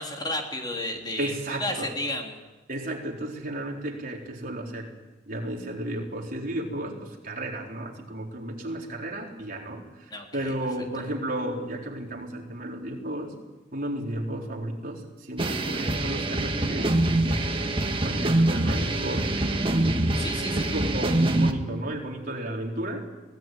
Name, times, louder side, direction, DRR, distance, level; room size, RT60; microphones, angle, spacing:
voice 1, 0.0-2.4 10.1-10.5 11.0-11.1 20.2-20.7, left 1 dB, 25° left, 1 dB, 3.3 m, -33 dB
voice 2, 1.2-2.0 2.7-4.9 5.3-13.4 13.7-17.6 18.0-20.0 20.5-23.1, right 1 dB, 50° right, 0 dB, 4.3 m, -33 dB
sound 1, 15.4-21.5, right 1 dB, 30° right, 1.8 m, -25 dB
23.5 x 18.5 x 9.3 m, 1.2 s
head